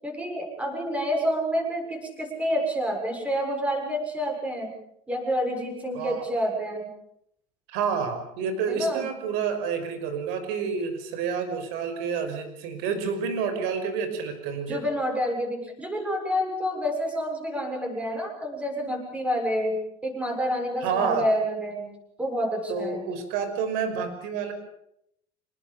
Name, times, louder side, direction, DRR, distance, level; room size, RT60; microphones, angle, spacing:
voice 1, 0.0-4.7 5.1-6.9 8.7-9.1 14.7-21.9 22.2-23.0, equal, 5° right, 2 dB, 6.7 m, -28 dB
voice 2, 7.7-14.8 20.8-21.2 22.7-24.5, right 6 dB, 70° right, 8 dB, 5.8 m, -29 dB
26.5 x 20.0 x 7.0 m, 0.76 s
cardioid pair, 155°, 17 cm